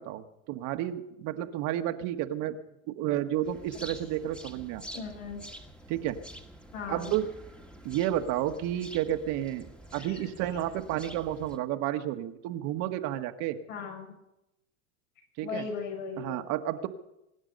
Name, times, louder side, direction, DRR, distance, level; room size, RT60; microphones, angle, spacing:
voice 1, 0.0-2.6 2.9-4.8 5.9-6.2 6.9-7.3 7.8-13.6 15.4-15.6 16.2-16.9, right 12 dB, 50° right, 7 dB, 1.6 m, -31 dB
sound 1, 3.4-11.6, equal, ahead, 1.8 m, -47 dB
voice 2, 4.9-5.4 6.7-7.1 10.0-10.3 13.7-14.1 15.4-16.5, left 5 dB, 70° left, 1 dB, 6.9 m, -38 dB
24.5 x 9.9 x 5.3 m, 0.87 s
hypercardioid pair, 105°, 40 cm